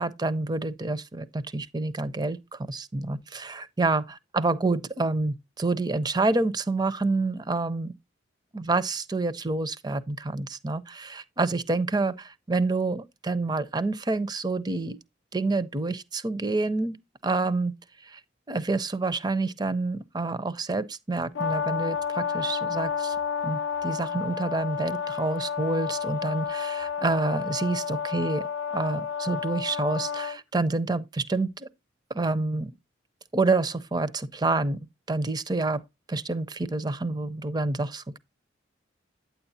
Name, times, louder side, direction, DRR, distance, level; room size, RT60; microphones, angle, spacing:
voice 1, 0.0-4.0 4.3-7.9 8.5-15.0 15.3-17.0 17.2-17.7 18.0-18.2 18.5-23.2 23.4-28.4 28.7-31.7 32.1-32.7 33.3-34.8 35.1-35.8 36.1-38.2, right 3 dB, 20° right, 0.5 m, -28 dB
Brass instrument, 21.3-30.4, left 7 dB, 70° left, 0.4 m, -31 dB
9.3 x 8.1 x 2.7 m
head